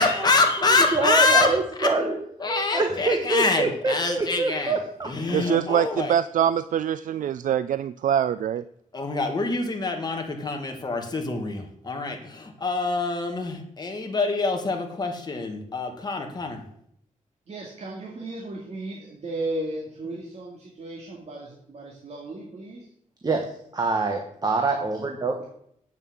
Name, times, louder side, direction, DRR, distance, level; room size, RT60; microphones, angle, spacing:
voice 1, 0.0-1.9 2.4-4.8 5.1-6.1 8.9-16.6, left 3 dB, 30° left, 2.0 m, -25 dB
voice 2, 0.7-2.2 2.5-5.1 23.2-25.5, right 3 dB, 30° right, 1.3 m, -25 dB
voice 3, 5.3-8.6, right 9 dB, 80° right, 0.4 m, -24 dB
voice 4, 17.5-22.8, right 2 dB, 55° right, 2.4 m, -35 dB
8.4 x 7.2 x 8.6 m
wide cardioid pair, 135°, 13 cm